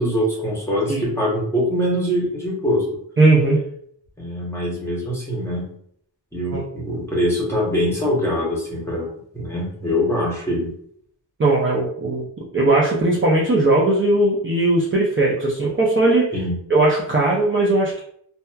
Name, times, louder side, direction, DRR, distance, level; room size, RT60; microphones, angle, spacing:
voice 1, 0.0-2.8 4.2-5.7 6.3-9.1 9.3-10.7 16.3-16.6, equal, 5° left, -4 dB, 0.8 m, -23 dB
voice 2, 3.2-3.6 6.5-6.6 11.4-12.3 12.5-16.3 16.7-18.0, right 2 dB, 30° right, -5 dB, 0.4 m, -18 dB
2.8 x 2.2 x 2.2 m, 0.66 s
wide cardioid pair, 115°, 44 cm